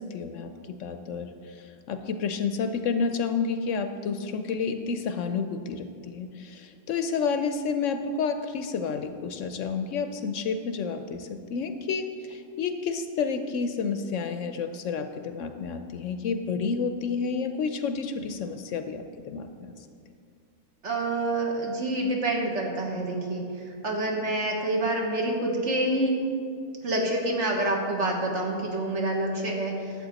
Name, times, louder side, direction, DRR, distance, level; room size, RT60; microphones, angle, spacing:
voice 1, 0.0-19.5, left 5 dB, 70° left, 8 dB, 0.8 m, -30 dB
voice 2, 20.8-26.1 26.8-29.9, right 1 dB, 55° right, 0 dB, 1.6 m, -27 dB
12.0 x 7.8 x 4.0 m, 2.4 s
omnidirectional pair, 1.5 m